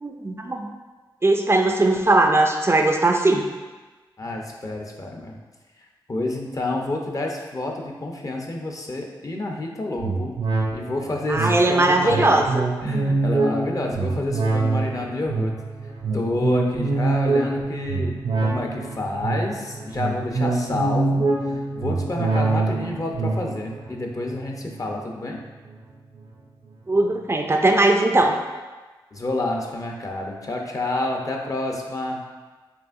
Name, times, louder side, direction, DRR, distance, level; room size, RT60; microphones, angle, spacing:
voice 1, 0.0-0.7 1.2-3.4 11.3-12.7 26.9-28.4, right 2 dB, 30° right, 3 dB, 0.4 m, -19 dB
voice 2, 4.2-5.4 6.1-10.4 10.7-12.5 12.8-15.5 16.1-18.1 18.4-25.4 29.1-32.2, left 2 dB, 40° left, 1 dB, 0.6 m, -29 dB
sound 1, 10.0-25.7 26.1-26.2, right 3 dB, 75° right, 0.6 m, -25 dB
4.6 x 2.5 x 2.5 m, 1.3 s
cardioid pair, 40°, 9 cm